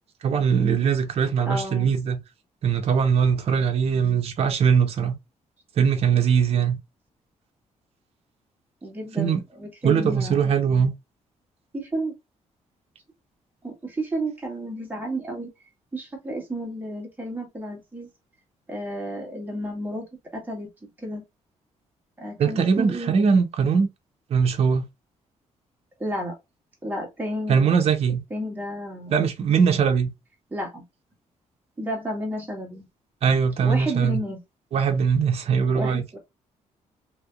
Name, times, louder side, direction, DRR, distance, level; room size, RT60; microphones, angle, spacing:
voice 1, 0.2-2.2 2.6-5.2 5.8-6.8 9.2-9.4 9.8-10.9 22.4-23.9 24.3-24.9 27.5-28.2 29.1-30.1 33.2-34.2 34.7-36.0, right 6 dB, 50° right, 0.8 m, -21 dB
voice 2, 1.5-1.9 8.8-10.5 11.7-12.1 13.6-15.5 15.9-18.1 18.7-20.1 20.3-21.2 22.2-23.1 26.0-26.3 26.8-27.7 28.3-29.3 30.5-30.8 31.8-32.9 33.6-34.4 35.7-36.2, right 1 dB, 15° right, 1.5 m, -32 dB
3.3 x 2.8 x 2.3 m
cardioid pair, 130°, 13 cm